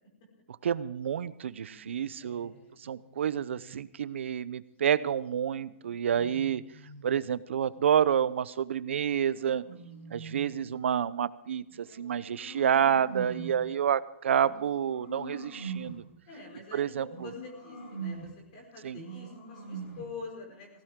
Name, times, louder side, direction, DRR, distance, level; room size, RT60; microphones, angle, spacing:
voice 1, 0.6-2.5 2.8-6.6 7.0-9.6 10.1-16.0 16.7-17.3 18.8-19.0, right 8 dB, 65° right, 17 dB, 0.7 m, -29 dB
sound 1, 1.5-3.9 5.5-7.3 8.7-10.7 11.7-13.7 14.4-16.1 17.1-18.5 18.9-20.2, right 4 dB, 55° left, 7.0 m, -45 dB
voice 2, 2.2-2.8 5.8-6.3 9.7-10.0 13.6-13.8 16.3-20.7, left 4 dB, 35° left, 0 dB, 5.0 m, -46 dB
17.5 x 16.5 x 3.7 m, 0.74 s
hypercardioid pair, 175°, 7 cm